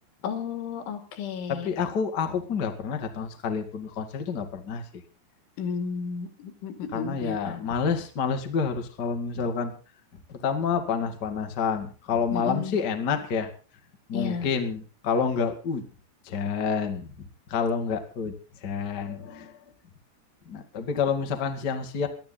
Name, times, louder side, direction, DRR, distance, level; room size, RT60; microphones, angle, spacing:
voice 1, 0.2-1.8 5.6-7.7 12.3-12.8 14.1-14.5, left 6 dB, 80° left, 7 dB, 4.9 m, -33 dB
voice 2, 1.5-4.8 6.9-9.7 10.3-13.5 14.1-15.8 16.2-17.1 17.5-18.3 18.6-19.5 20.4-22.1, left 6 dB, 45° left, 5 dB, 1.4 m, -28 dB
20.5 x 13.0 x 4.0 m, 0.37 s
omnidirectional pair, 5.4 m